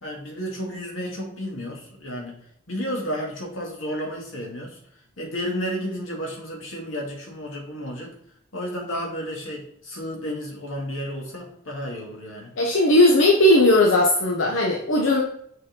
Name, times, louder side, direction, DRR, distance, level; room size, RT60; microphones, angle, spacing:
voice 1, 0.0-2.4 2.7-4.8 5.2-8.2 8.5-12.5, equal, 90° left, 0 dB, 1.9 m, -32 dB
voice 2, 12.6-15.2, left 1 dB, 75° left, 0 dB, 0.9 m, -17 dB
6.5 x 4.1 x 3.8 m, 0.68 s
head